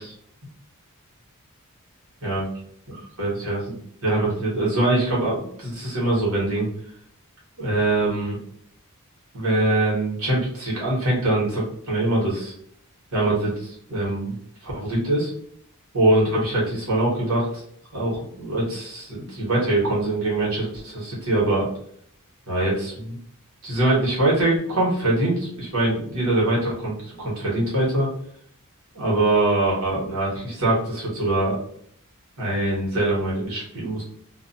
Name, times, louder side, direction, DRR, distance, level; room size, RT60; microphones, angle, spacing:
voice 1, 2.9-3.8 4.0-6.7 7.6-8.4 9.3-12.5 13.1-14.3 14.6-15.3 15.9-17.5 17.9-21.6 22.5-23.2 23.6-28.1 28.9-31.6 32.4-34.0, right 2 dB, 70° right, -6 dB, 1.2 m, -23 dB
2.5 x 2.1 x 2.6 m, 0.64 s
head